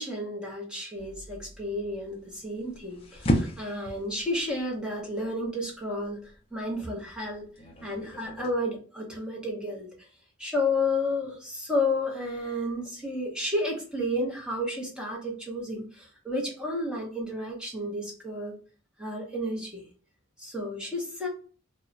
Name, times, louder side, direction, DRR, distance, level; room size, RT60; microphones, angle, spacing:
voice 1, 0.0-7.5 7.8-10.1 10.4-18.6 19.0-19.9 20.4-21.3, left 1 dB, 5° right, -2 dB, 0.7 m, -31 dB
sound 1, 1.0-8.5, equal, 25° left, 0.4 m, -35 dB
2.3 x 2.1 x 3.7 m, 0.39 s
head